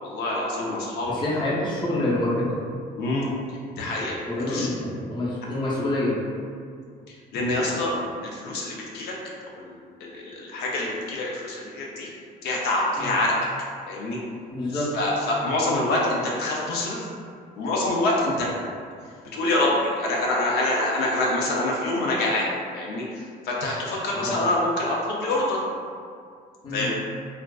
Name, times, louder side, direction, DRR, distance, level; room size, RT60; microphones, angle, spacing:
voice 1, 0.0-1.5 3.0-3.3 3.8-4.1 4.5-4.7 7.3-8.0 8.2-9.1 9.6-9.8 10.0-12.1 12.4-13.3 13.9-14.2 14.7-17.1 17.6-18.5 19.3-22.5 22.7-25.6 26.7-26.9, left 2 dB, 75° left, -3 dB, 0.5 m, -26 dB
voice 2, 1.0-2.6 4.3-6.2 13.0-13.1 14.5-14.9 24.1-24.4 26.6-26.9, left 1 dB, 25° left, -7 dB, 0.7 m, -27 dB
2.4 x 2.3 x 2.2 m, 2.2 s
cardioid pair, 110°, 17 cm